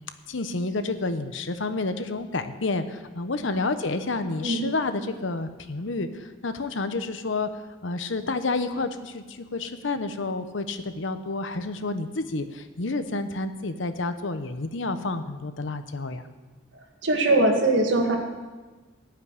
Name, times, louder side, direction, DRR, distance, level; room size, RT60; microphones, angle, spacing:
voice 1, 0.3-7.5 7.8-16.2, left 3 dB, 70° left, 10 dB, 0.9 m, -29 dB
voice 2, 17.0-18.2, right 2 dB, 65° right, 2 dB, 2.0 m, -21 dB
15.0 x 5.9 x 9.7 m, 1.3 s
head